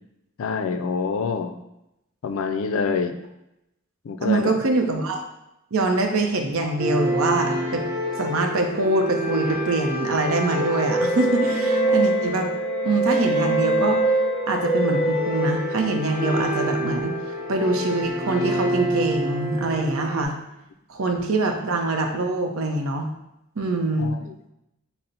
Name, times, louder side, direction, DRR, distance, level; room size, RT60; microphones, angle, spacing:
voice 1, 0.4-1.6 2.2-3.2 4.0-4.6 24.0-24.4, left 5 dB, 65° left, 8 dB, 0.4 m, -26 dB
voice 2, 4.2-5.2 5.7-7.8 8.2-12.5 12.8-14.0 14.5-17.1 17.5-20.4 20.9-23.1 23.6-24.1, right 2 dB, 70° right, 3 dB, 0.6 m, -24 dB
sound 1, 6.8-20.2, right 1 dB, 40° right, 1.1 m, -25 dB
5.5 x 2.0 x 3.9 m, 0.87 s
head